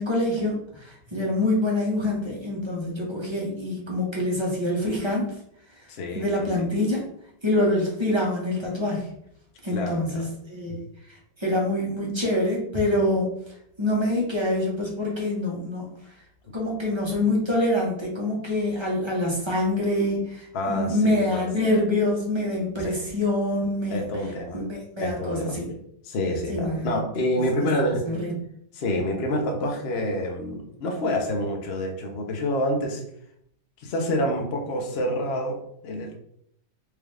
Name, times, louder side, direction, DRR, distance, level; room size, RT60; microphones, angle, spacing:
voice 1, 0.0-5.3 6.1-7.0 7.4-9.0 9.6-10.8 11.4-13.3 13.8-15.9 16.5-24.0 24.5-25.7 26.5-26.9 27.6-27.7 28.0-28.3, left 1 dB, 25° right, -3 dB, 0.6 m, -25 dB
voice 2, 5.9-6.5 9.7-10.3 20.5-21.5 22.8-23.0 23.9-24.6 25.0-28.0 28.7-33.0 33.8-36.1, left 1 dB, 55° left, 2 dB, 0.7 m, -28 dB
4.7 x 2.4 x 3.3 m, 0.71 s
omnidirectional pair, 2.0 m